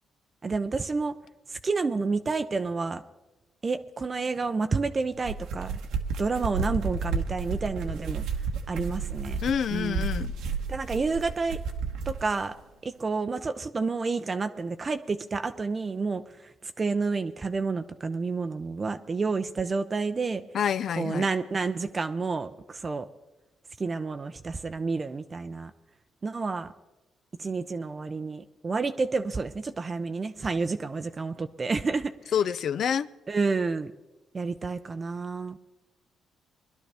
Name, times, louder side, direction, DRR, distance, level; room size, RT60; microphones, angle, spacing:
voice 1, 0.4-1.1 1.5-3.0 3.6-5.8 6.2-8.2 8.7-9.4 9.7-10.1 10.7-11.6 12.1-12.5 12.8-20.4 21.0-23.1 23.8-25.7 26.2-26.7 27.4-32.3 33.3-33.9 34.3-35.6, right 4 dB, 30° right, 9 dB, 0.5 m, -29 dB
sound 1, 5.1-12.2, right 4 dB, 90° right, 1.2 m, -32 dB
voice 2, 9.4-10.3 20.5-21.3 32.3-33.1, left 8 dB, 60° left, 16 dB, 0.4 m, -27 dB
21.5 x 11.5 x 3.4 m, 1.1 s
cardioid pair, 90°, 0 cm